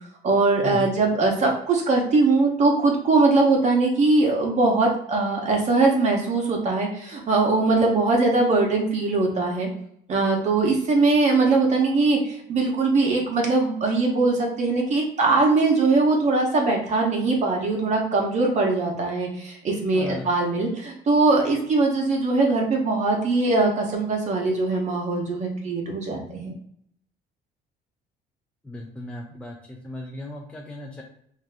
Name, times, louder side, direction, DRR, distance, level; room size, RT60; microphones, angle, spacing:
voice 1, 0.2-9.7 10.1-26.5, right 3 dB, 45° right, 0 dB, 0.7 m, -21 dB
voice 2, 19.9-20.3 28.6-31.0, left 2 dB, 5° left, 0 dB, 0.4 m, -36 dB
2.6 x 2.3 x 3.3 m, 0.69 s
cardioid pair, 110°, 17 cm